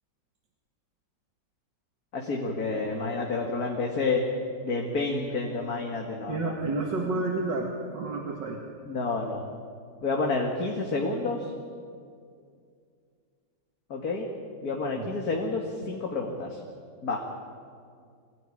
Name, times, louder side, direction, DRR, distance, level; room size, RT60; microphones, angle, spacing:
voice 1, 2.1-4.2 4.6-6.5 8.9-9.5 10.0-11.5 13.9-14.3 14.6-16.6 17.0-17.2, left 3 dB, 55° left, 0 dB, 2.5 m, -29 dB
voice 2, 6.3-8.6 14.9-15.0, right 3 dB, 80° right, 1 dB, 2.6 m, -30 dB
24.5 x 18.0 x 10.0 m, 2.2 s
omnidirectional pair, 1.9 m